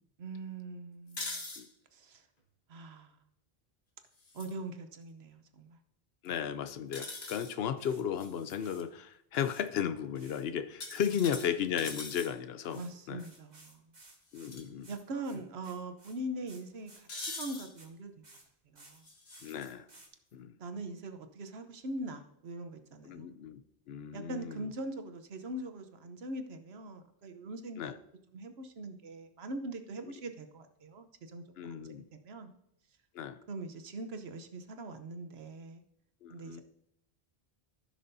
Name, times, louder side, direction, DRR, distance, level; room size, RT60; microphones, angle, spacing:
voice 1, 0.2-1.4 1.9-2.2 2.7-3.2 4.3-5.8 12.7-13.8 14.9-18.2 18.7-19.1 20.6-23.3 24.1-27.9 28.3-31.4 32.1-32.5 33.5-35.8 36.3-36.6, right 2 dB, 85° right, 8 dB, 1.1 m, -42 dB
sound 1, 1.1-1.6 4.2-4.5 6.9-7.5 8.2-8.6 10.8-12.3 14.3-14.6 15.0-15.1 17.1-17.7 19.0-19.7, left 3 dB, 55° left, 1.7 m, -42 dB
voice 2, 6.2-13.3 14.3-14.9 19.4-19.9 20.3-20.5 23.0-23.6 23.9-24.7 27.8-27.9 31.6-32.0 33.1-33.4 36.2-36.6, left 8 dB, 75° left, 11 dB, 0.8 m, -35 dB
sound 2, 6.4-6.5 6.9-7.2 7.6-8.0 8.4-8.8 9.3-10.5 11.0-11.3 11.5-12.0 12.6-18.0 18.2-18.5 18.8-19.0 19.3-19.6 19.9-20.1, right 2 dB, 45° right, 1.6 m, -58 dB
15.0 x 6.3 x 2.7 m, 0.77 s
omnidirectional pair, 1.0 m